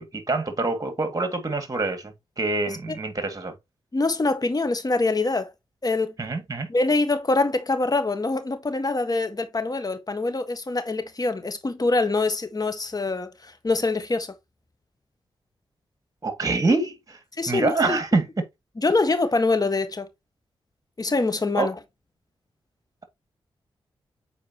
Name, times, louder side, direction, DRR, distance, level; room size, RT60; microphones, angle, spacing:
voice 1, 0.0-3.5 6.2-6.7 16.2-17.2 17.5-18.3 21.5-21.7, right 3 dB, 35° right, 2.4 m, -25 dB
voice 2, 3.9-5.5 5.8-6.1 6.7-14.3 17.4-18.0 18.8-20.1 21.0-21.7, left 3 dB, 40° left, 1.6 m, -24 dB
7.1 x 4.6 x 3.0 m
supercardioid pair, 40°, 10 cm